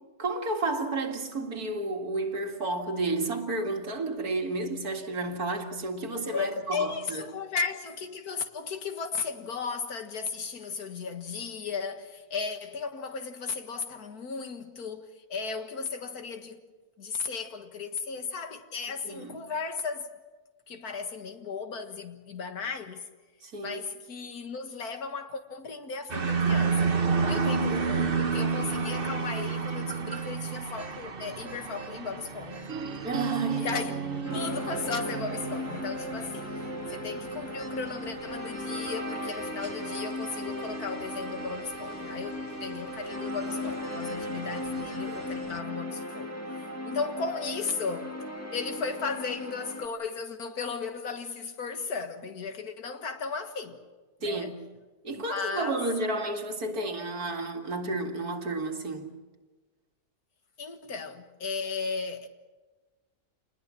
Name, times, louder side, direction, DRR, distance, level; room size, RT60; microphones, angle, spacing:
voice 1, 0.2-7.2 19.0-19.4 23.4-23.8 33.0-33.7 39.8-39.9 45.6-45.7 54.2-54.6 55.0-59.1, right 2 dB, 85° right, 2.6 m, -31 dB
voice 2, 6.3-16.6 17.0-20.1 20.7-23.1 23.6-27.0 27.3-32.7 33.6-34.0 34.3-36.6 36.9-46.3 46.6-48.1 48.5-53.8 54.2-54.5 55.3-55.8 60.6-62.3, left 5 dB, 90° left, 2.1 m, -35 dB
sound 1, 26.1-45.6, right 5 dB, 40° right, 1.4 m, -33 dB
sound 2, 32.7-38.5, right 6 dB, 55° right, 1.2 m, -38 dB
sound 3, 34.2-49.9, left 1 dB, 10° left, 2.1 m, -36 dB
27.5 x 20.5 x 7.5 m
omnidirectional pair, 1.6 m